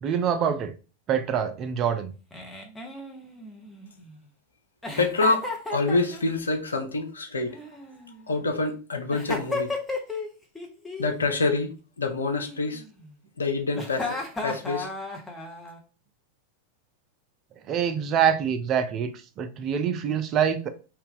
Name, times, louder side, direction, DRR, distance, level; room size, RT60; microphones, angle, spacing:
voice 1, 0.0-0.7 1.1-2.1 17.7-19.1 19.4-20.7, right 8 dB, 35° right, 0.4 m, -25 dB
Giggle, 2.3-4.1 4.8-6.4 7.5-8.4 9.1-10.3 10.6-11.1 12.3-13.1 13.7-15.8, left 3 dB, 10° left, 0.8 m, -34 dB
voice 2, 5.0-7.6 8.3-9.7 11.0-12.8 13.4-14.9, left 3 dB, 75° left, 0.6 m, -27 dB
2.7 x 2.3 x 3.6 m
figure-of-eight pair, 90°, 0 cm